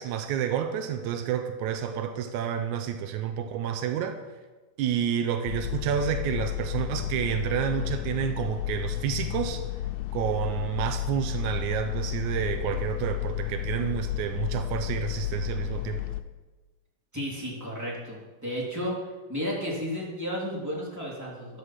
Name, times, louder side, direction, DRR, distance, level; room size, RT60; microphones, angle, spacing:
voice 1, 0.0-4.2 4.8-9.6 10.1-16.0, right 9 dB, 80° right, 8 dB, 1.7 m, -29 dB
sound 1, 5.5-16.2, left 15 dB, 90° left, 2.6 m, -32 dB
voice 2, 17.1-19.0 19.3-21.6, equal, 5° right, -4 dB, 2.9 m, -33 dB
13.0 x 13.0 x 4.8 m, 1.2 s
omnidirectional pair, 4.3 m